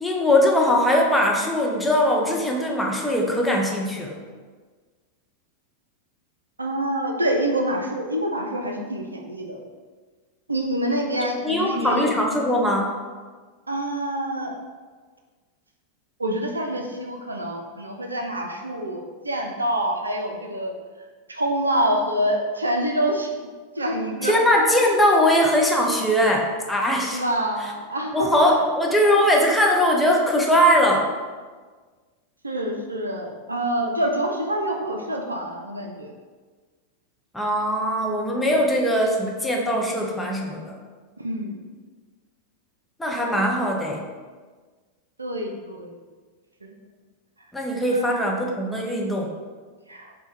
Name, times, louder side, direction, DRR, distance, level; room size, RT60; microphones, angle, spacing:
voice 1, 0.0-4.2 11.4-12.9 24.2-27.2 27.6-27.7 28.1-31.1 37.3-40.8 43.0-44.1 47.5-49.3, equal, 5° left, -1 dB, 0.5 m, -21 dB
voice 2, 6.6-9.6 10.5-12.2 13.7-14.5 16.2-20.7 21.3-23.3 23.8-24.3 27.1-28.6 32.4-36.1 38.4-38.6 41.2-41.6 45.2-45.9 46.6-46.7 47.9-48.1 49.9-50.1, right 1 dB, 80° right, 1 dB, 0.4 m, -26 dB
4.2 x 2.2 x 3.3 m, 1.5 s
figure-of-eight pair, 90°, 0 cm